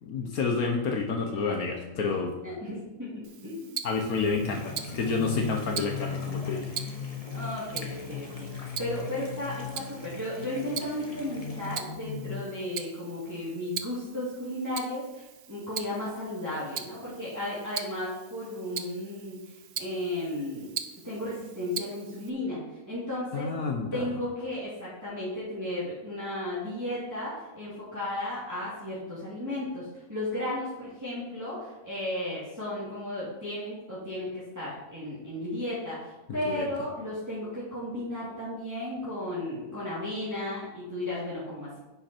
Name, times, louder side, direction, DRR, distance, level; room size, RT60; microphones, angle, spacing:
voice 1, 0.0-2.3 3.8-6.7 23.3-24.1 36.5-36.7, left 4 dB, 70° left, 3 dB, 1.4 m, -29 dB
voice 2, 2.4-3.7 4.1-4.2 7.3-20.7 21.0-22.6 22.9-23.5 23.9-41.8, left 1 dB, 10° right, -10 dB, 2.8 m, -34 dB
Tick-tock, 3.2-22.3, right 8 dB, 60° right, 0.7 m, -42 dB
sound 1, 4.1-12.4, left 6 dB, 45° left, 0.8 m, -38 dB
sound 2, 4.4-11.8, left 2 dB, 25° left, 1.1 m, -47 dB
9.9 x 5.8 x 4.4 m, 1.0 s
omnidirectional pair, 1.6 m